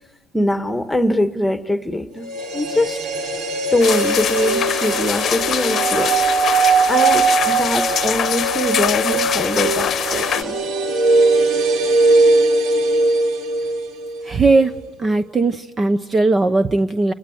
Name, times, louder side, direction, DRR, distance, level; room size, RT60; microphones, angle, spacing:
voice 1, 0.3-2.3 2.5-3.0 3.7-6.2 6.9-10.6, left 1 dB, 5° left, 1.6 m, -22 dB
sound 1, 2.2-14.3 14.6-14.7, right 3 dB, 65° right, 5.5 m, -19 dB
sound 2, 3.8-10.4, left 9 dB, 40° left, 1.1 m, -23 dB
voice 2, 14.2-14.7 15.0-17.1, right 3 dB, 20° right, 1.0 m, -18 dB
29.5 x 21.5 x 8.1 m
cardioid pair, 130°, 0 cm